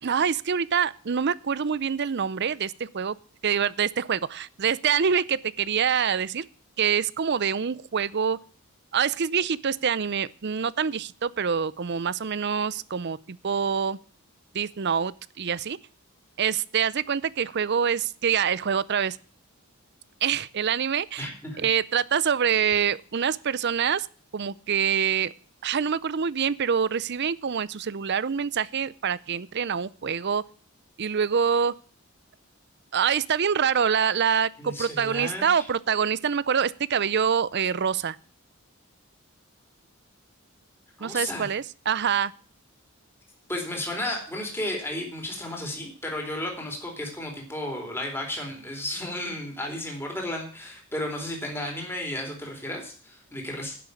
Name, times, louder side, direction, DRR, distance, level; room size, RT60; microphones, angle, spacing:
voice 1, 0.0-3.2 3.4-6.4 6.8-8.4 8.9-14.0 14.5-15.8 16.4-19.2 20.2-21.3 21.6-24.1 24.3-25.3 25.6-30.4 31.0-31.7 32.9-38.2 41.0-42.3, right 7 dB, 50° right, 20 dB, 0.5 m, -25 dB
voice 2, 21.2-21.7 34.6-35.7 41.0-41.5 43.5-53.8, left 1 dB, 10° left, 1 dB, 3.9 m, -33 dB
11.0 x 7.6 x 8.4 m, 0.43 s
head